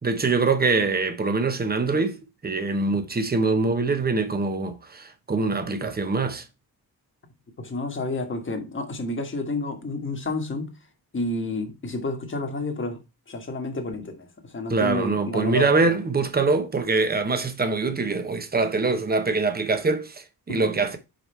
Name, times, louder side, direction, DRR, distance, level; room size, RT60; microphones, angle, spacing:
voice 1, 0.0-6.4 14.7-21.0, right 3 dB, 25° right, 0.9 m, -24 dB
voice 2, 7.6-10.8 11.1-13.0 13.3-15.9 20.5-20.7, left 2 dB, 30° left, 1.4 m, -30 dB
5.2 x 4.9 x 4.4 m
wide cardioid pair, 140°, 38 cm